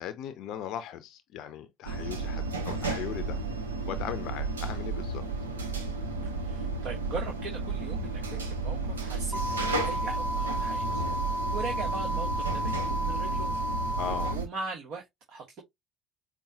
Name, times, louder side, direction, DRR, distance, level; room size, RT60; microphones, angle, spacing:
voice 1, 0.0-3.4 3.9-5.2 14.0-14.4, left 10 dB, 60° left, 0.5 m, -38 dB
sound 1, 1.8-14.5, right 3 dB, 90° right, 0.7 m, -32 dB
voice 2, 6.4-13.6 14.3-15.6, right 4 dB, 55° right, 1.1 m, -40 dB
sound 2, 9.3-14.3, equal, 15° right, 0.4 m, -32 dB
5.3 x 2.1 x 2.8 m
hypercardioid pair, 60°, 0 cm